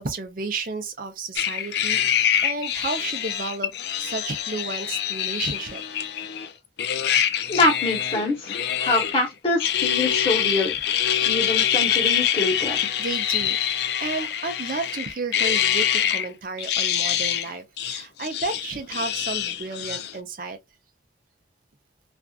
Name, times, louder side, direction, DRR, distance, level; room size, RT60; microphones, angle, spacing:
voice 1, 0.0-3.7 4.0-5.8 13.0-15.8 16.1-20.6, right 3 dB, 50° right, 0.6 m, -32 dB
sound 1, 1.4-6.5 6.8-9.3 9.6-16.3 16.6-17.5 17.8-20.1, left 9 dB, 60° left, 0.3 m, -25 dB
voice 2, 7.5-10.7 11.2-12.9, left 2 dB, 30° left, 1.1 m, -24 dB
2.5 x 2.3 x 2.3 m
head